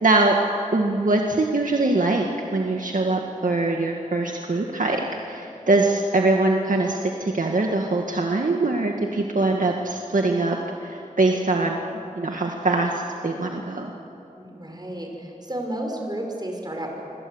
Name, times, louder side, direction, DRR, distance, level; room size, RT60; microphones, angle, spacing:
voice 1, 0.0-0.4 0.7-13.9, right 2 dB, 65° right, 1 dB, 1.9 m, -23 dB
voice 2, 14.4-16.9, right 1 dB, 30° right, 1 dB, 5.9 m, -32 dB
27.5 x 24.5 x 8.1 m, 2.7 s
wide cardioid pair, 75°, 15 cm